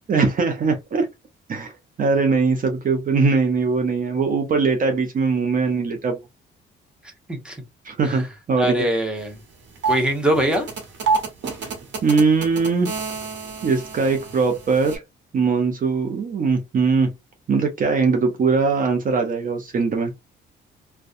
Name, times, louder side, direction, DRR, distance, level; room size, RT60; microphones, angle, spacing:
voice 1, 0.1-1.1 1.5-1.7 2.0-6.2 7.8-8.9 12.0-12.9 13.6-15.0 15.3-17.1 17.5-20.1, right 4 dB, 45° right, 0.6 m, -21 dB
voice 2, 8.6-9.4 9.9-10.7, right 1 dB, 5° right, 0.9 m, -22 dB
sound 1, 9.2-9.3 9.6-15.0, right 4 dB, 70° right, 1.1 m, -28 dB
2.6 x 2.2 x 2.4 m
cardioid pair, 90°, 20 cm